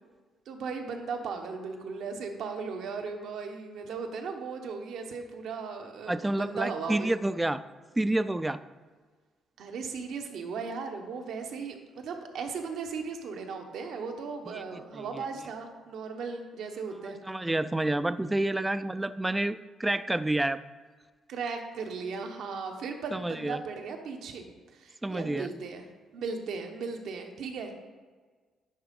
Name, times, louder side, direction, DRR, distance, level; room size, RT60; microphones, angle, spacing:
voice 1, 0.5-7.1 9.6-17.2 21.3-24.5 24.7-25.9 26.1-27.8, right 5 dB, 75° right, 4 dB, 1.1 m, -37 dB
voice 2, 6.1-7.6 8.0-8.6 14.5-15.2 17.2-20.6 23.1-23.6 25.0-25.5, right 1 dB, 10° right, 13 dB, 0.3 m, -29 dB
10.5 x 3.7 x 5.2 m, 1.5 s
cardioid pair, 90°, 0 cm